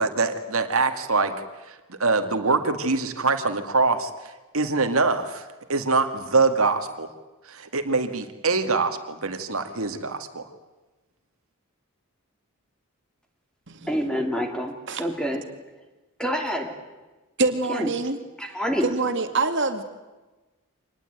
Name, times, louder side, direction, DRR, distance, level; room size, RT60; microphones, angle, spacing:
voice 1, 0.0-1.3 1.7-4.1 4.5-7.1 7.5-10.4, right 3 dB, 75° right, 7 dB, 2.1 m, -24 dB
voice 2, 13.9-15.5 16.2-16.8 17.7-17.9 18.4-18.9, equal, 5° left, 4 dB, 2.8 m, -27 dB
voice 3, 17.4-18.2 18.8-19.8, right 3 dB, 55° right, 7 dB, 2.3 m, -25 dB
26.0 x 20.0 x 9.2 m, 1.1 s
head